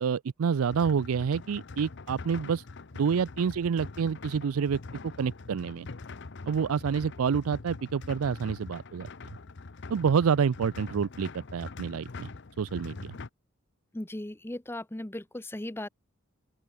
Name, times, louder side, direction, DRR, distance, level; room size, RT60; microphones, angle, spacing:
voice 1, 0.0-2.6 2.9-5.9 6.5-9.1 9.9-12.3 12.6-13.2, right 6 dB, 85° right, 0.4 m, -28 dB
sound 1, 0.7-13.3, left 3 dB, 55° left, 0.8 m, -43 dB
voice 2, 13.9-15.9, left 1 dB, 10° left, 0.7 m, -37 dB
open air
head